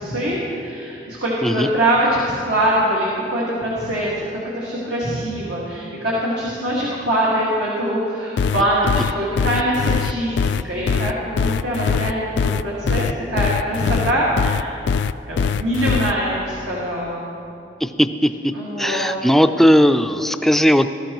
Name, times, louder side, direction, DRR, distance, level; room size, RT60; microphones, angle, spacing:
voice 1, 0.0-4.3 4.5-14.8 15.2-17.2 18.5-19.1, right 1 dB, 80° right, -6 dB, 1.9 m, -23 dB
sound 1, 8.4-16.1, left 6 dB, 80° left, 0.3 m, -21 dB
voice 2, 17.8-18.5 18.8-20.9, equal, ahead, 8 dB, 0.3 m, -17 dB
19.0 x 13.0 x 3.0 m, 2.8 s
head